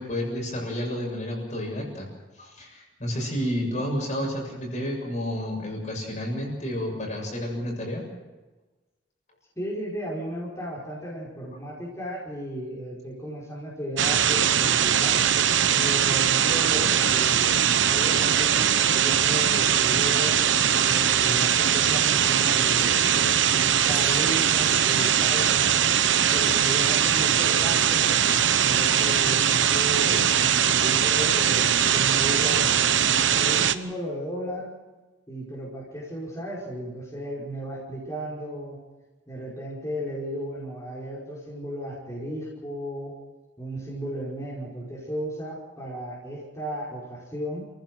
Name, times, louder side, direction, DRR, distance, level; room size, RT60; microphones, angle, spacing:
voice 1, 0.0-2.1 2.4-8.0 15.6-15.7, equal, 40° left, 0 dB, 7.2 m, -30 dB
voice 2, 9.6-15.2 15.8-23.0 23.5-25.7 26.3-28.1 28.6-32.8 33.3-34.7 35.3-38.8 39.3-43.2 43.6-47.7, equal, 15° left, -6 dB, 5.3 m, -35 dB
sound 1, 14.0-33.7, right 9 dB, 70° right, 0.9 m, -21 dB
30.0 x 16.0 x 6.4 m, 1.2 s
head